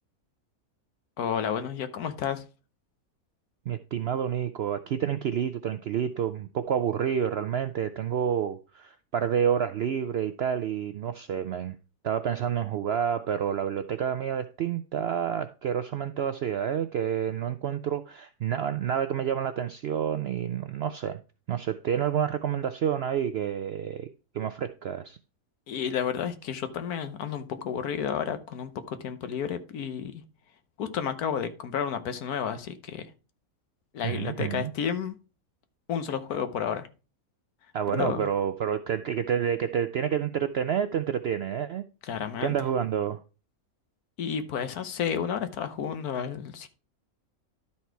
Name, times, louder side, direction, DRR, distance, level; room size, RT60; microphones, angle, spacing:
voice 1, 1.2-2.4 25.7-30.2 30.8-33.1 33.9-35.2 35.9-36.9 37.9-38.3 42.0-42.6 44.2-46.7, left 8 dB, 80° left, 1.5 m, -31 dB
voice 2, 3.7-11.8 12.0-21.2 21.5-24.1 24.3-25.2 34.0-34.7 37.7-41.9 42.4-43.2, right 8 dB, 75° right, 0.6 m, -29 dB
12.0 x 4.3 x 4.5 m
omnidirectional pair, 1.6 m